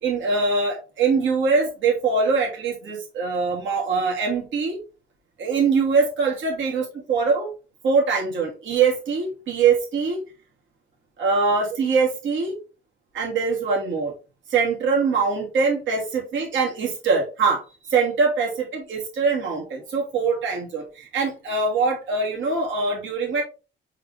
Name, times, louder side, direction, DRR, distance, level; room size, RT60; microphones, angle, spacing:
voice 1, 0.0-4.8 5.4-7.5 7.8-10.2 11.2-12.6 13.1-14.1 14.5-17.6 17.9-23.4, right 4 dB, 75° right, -1 dB, 2.6 m, -23 dB
5.6 x 5.2 x 3.3 m, 0.31 s
cardioid pair, 90°, 20 cm